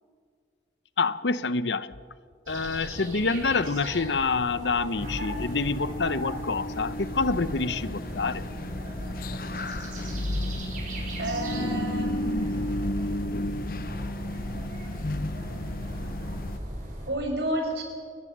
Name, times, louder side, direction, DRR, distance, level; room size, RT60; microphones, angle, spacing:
voice 1, 1.0-1.9 2.5-8.4, left 4 dB, 85° left, 16 dB, 0.8 m, -27 dB
sound 1, 2.5-17.1, right 1 dB, 45° right, 5.8 m, -39 dB
sound 2, 5.0-16.6, left 1 dB, 50° left, 0.8 m, -32 dB
voice 2, 11.2-12.5 17.1-17.8, right 1 dB, 75° right, 2 dB, 5.6 m, -30 dB
28.5 x 15.0 x 7.4 m, 2.1 s
head